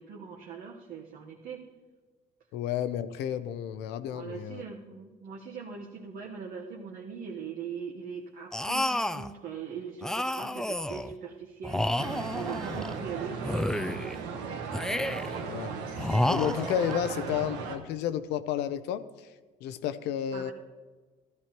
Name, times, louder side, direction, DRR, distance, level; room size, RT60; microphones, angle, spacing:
voice 1, 0.0-1.6 4.1-14.4 20.3-20.5, right 6 dB, 65° right, -1 dB, 1.2 m, -41 dB
voice 2, 2.5-4.6 15.4-19.0 19.6-20.5, left 10 dB, 85° left, 12 dB, 0.6 m, -32 dB
sound 1, 8.5-9.3 10.0-11.1 11.6-13.0 13.4-14.2 14.7-15.4 16.0-17.0, left 1 dB, 5° left, 0.3 m, -30 dB
sound 2, 12.0-17.8, right 5 dB, 90° right, 1.2 m, -36 dB
14.0 x 13.0 x 3.0 m, 1.3 s
cardioid pair, 110°, 17 cm